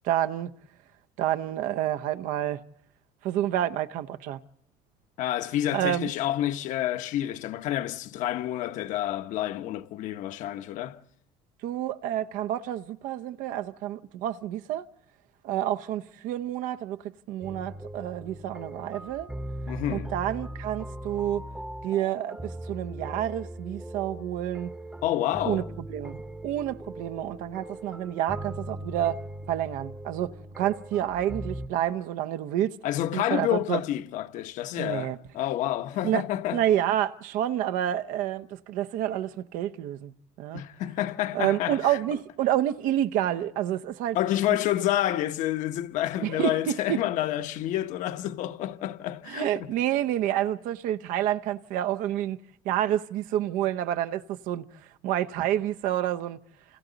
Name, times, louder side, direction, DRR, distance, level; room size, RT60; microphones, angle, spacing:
voice 1, 0.0-0.5 1.2-2.6 3.2-4.4 5.7-6.1 11.6-14.8 15.4-19.3 19.9-21.5 21.8-24.7 25.4-25.6 25.9-29.2 29.5-32.8 33.1-33.8 34.8-35.2 36.0-36.2 36.5-40.6 41.3-44.2 46.2-47.0 49.3-54.7 55.0-56.4, right 12 dB, 70° right, 0.8 m, -29 dB
voice 2, 5.2-11.0 19.7-20.1 25.0-25.7 32.8-36.6 40.5-42.0 44.1-49.7, left 13 dB, 65° left, 1.0 m, -29 dB
sound 1, 17.4-31.7, right 1 dB, 5° right, 0.9 m, -39 dB
29.0 x 28.5 x 4.0 m
cardioid pair, 155°, 14 cm